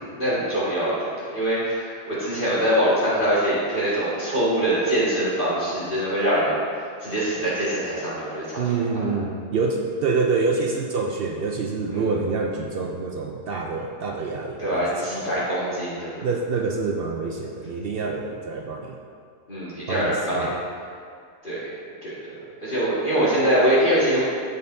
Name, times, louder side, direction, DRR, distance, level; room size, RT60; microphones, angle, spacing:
voice 1, 0.1-6.6 7.0-8.6 11.9-12.1 14.6-16.3 19.5-20.5 21.4-21.7 22.0-24.2, right 1 dB, 35° left, -10 dB, 2.1 m, -23 dB
voice 2, 8.6-15.4 16.2-19.0 19.9-20.6, right 4 dB, 85° right, 1 dB, 0.5 m, -26 dB
14.5 x 5.4 x 2.7 m, 2.2 s
omnidirectional pair, 1.7 m